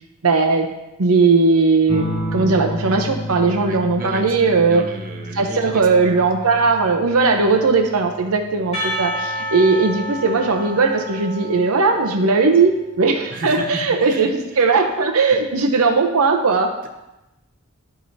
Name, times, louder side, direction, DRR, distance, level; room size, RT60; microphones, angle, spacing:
voice 1, 0.2-0.7 1.0-4.8 5.3-16.7, right 4 dB, 80° right, 4 dB, 0.7 m, -18 dB
sound 1, 1.9-11.0 12.4-13.0, equal, 65° left, 1.6 m, -32 dB
voice 2, 3.6-6.5 13.3-14.7 15.3-15.5, right 2 dB, 40° right, 1 dB, 0.8 m, -33 dB
Percussion, 8.7-12.6, right 1 dB, 30° left, 2.0 m, -29 dB
12.0 x 4.8 x 2.7 m, 0.96 s
head